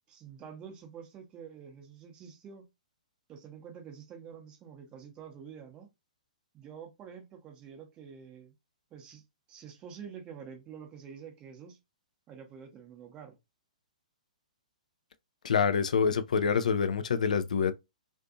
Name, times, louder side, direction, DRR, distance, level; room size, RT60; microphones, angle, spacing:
voice 1, 0.1-2.7 3.3-5.9 6.5-8.5 8.9-11.8 12.3-13.4, right 7 dB, 20° right, 0.7 m, -48 dB
voice 2, 15.4-17.7, left 6 dB, 65° left, 0.3 m, -26 dB
2.5 x 2.5 x 2.4 m
figure-of-eight pair, 120°, 4 cm